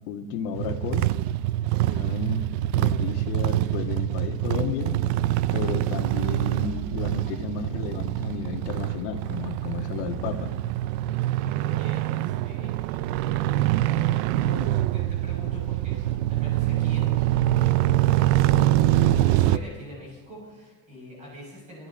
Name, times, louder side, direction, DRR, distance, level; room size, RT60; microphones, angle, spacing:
voice 1, 0.1-1.1 1.8-2.5 2.8-5.0 5.5-10.5, left 8 dB, 75° left, 4 dB, 1.8 m, -33 dB
sound 1, 0.5-19.6, right 14 dB, 80° right, 0.6 m, -24 dB
voice 2, 11.5-13.5 14.2-21.9, left 1 dB, 20° right, -3 dB, 7.2 m, -44 dB
27.0 x 11.0 x 4.4 m, 1.2 s
cardioid pair, 180°, 33 cm